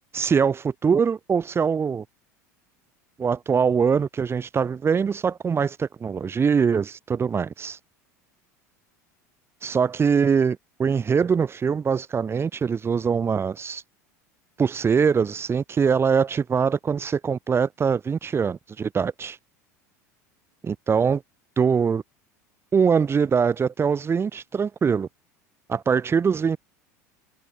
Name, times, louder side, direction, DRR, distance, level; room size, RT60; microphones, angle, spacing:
voice 1, 0.1-2.0 3.2-7.8 9.6-13.8 14.6-19.4 20.6-21.2 21.6-22.0 22.7-25.1 25.7-26.6, right 6 dB, 25° right, 5.1 m, -23 dB
hypercardioid pair, 85°, 9 cm